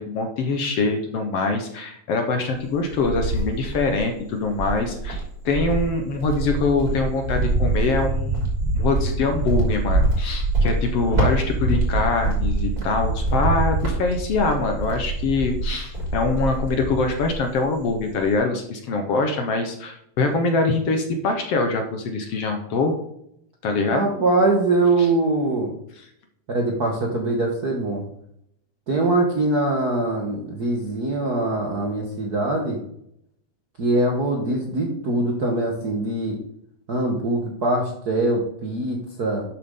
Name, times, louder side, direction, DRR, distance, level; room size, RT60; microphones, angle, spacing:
voice 1, 0.0-8.5 8.7-22.9 23.6-24.1 25.0-25.1, left 3 dB, 65° left, 4 dB, 1.8 m, -24 dB
Cricket, 2.5-4.1 4.5-17.5 17.8-18.3, right 2 dB, 30° right, 3.7 m, -24 dB
voice 2, 23.9-25.7 26.5-28.0 28.9-32.8 33.8-36.4 36.9-39.4, right 2 dB, 55° right, 0 dB, 1.1 m, -23 dB
12.0 x 7.3 x 3.8 m, 0.74 s
omnidirectional pair, 3.5 m